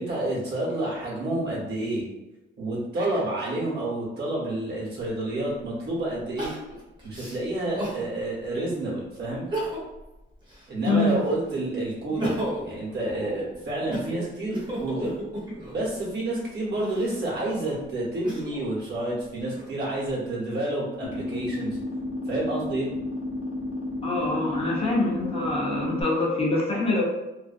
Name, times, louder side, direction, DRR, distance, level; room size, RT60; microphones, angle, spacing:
voice 1, 0.0-2.1 2.6-6.5 7.0-9.5 10.7-12.4 12.6-15.2 15.7-21.8 22.3-22.9, right 1 dB, 55° right, -4 dB, 1.1 m, -29 dB
Crying sobbing, 5.0-5.1 6.4-8.1 8.6-8.7 9.3-10.0 10.4-11.4 11.9-15.9 16.6-18.7 19.3-20.1, right 1 dB, 20° right, 0.8 m, -34 dB
voice 2, 10.9-11.2 24.0-27.0, left 2 dB, 30° left, -4 dB, 0.6 m, -25 dB
sound 1, 21.0-26.0, left 2 dB, 65° left, 0.7 m, -32 dB
2.5 x 2.3 x 2.4 m, 0.97 s
cardioid pair, 120°, 21 cm